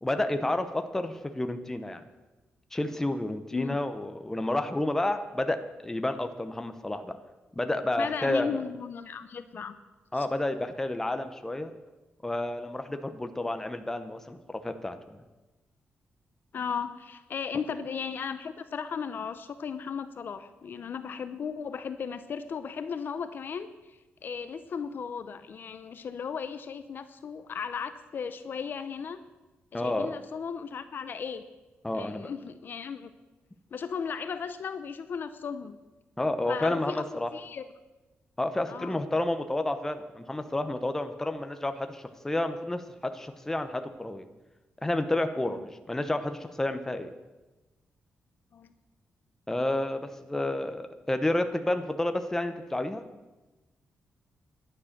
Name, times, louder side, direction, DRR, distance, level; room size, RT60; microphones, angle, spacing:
voice 1, 0.0-2.0 2.7-7.2 7.6-8.6 10.1-11.7 12.2-15.2 29.7-30.1 31.8-32.3 36.2-37.3 38.4-44.3 44.8-47.1 49.5-53.1, left 1 dB, 10° left, 8 dB, 0.8 m, -30 dB
voice 2, 8.0-9.8 10.1-10.3 16.5-29.2 29.7-31.4 31.9-33.1 33.7-35.8 36.5-37.0 37.3-37.6 38.7-39.0 41.2-41.3 45.4-45.6 48.5-48.7 50.3-50.4, left 6 dB, 55° left, 11 dB, 0.7 m, -36 dB
11.5 x 9.9 x 6.6 m, 1.1 s
wide cardioid pair, 140°, 4 cm